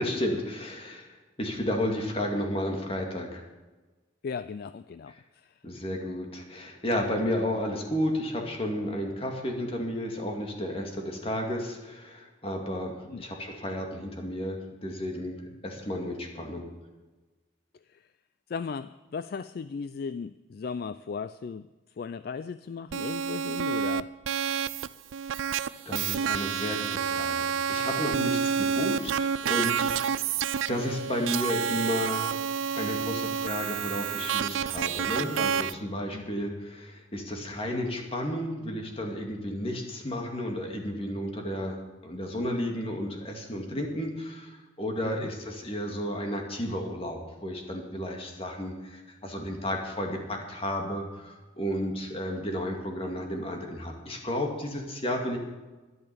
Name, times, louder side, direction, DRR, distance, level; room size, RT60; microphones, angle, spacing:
voice 1, 0.0-3.4 5.6-16.7 25.9-30.4 30.7-32.3 32.7-55.4, equal, 30° left, 2 dB, 2.1 m, -32 dB
voice 2, 4.2-5.6 13.1-13.3 17.9-18.0 18.5-21.7 22.0-24.1 36.1-36.5 45.0-45.3, left 5 dB, 50° left, 14 dB, 0.3 m, -37 dB
sound 1, 22.9-35.7, right 7 dB, 85° right, 0.4 m, -29 dB
12.0 x 11.0 x 6.9 m, 1.2 s
head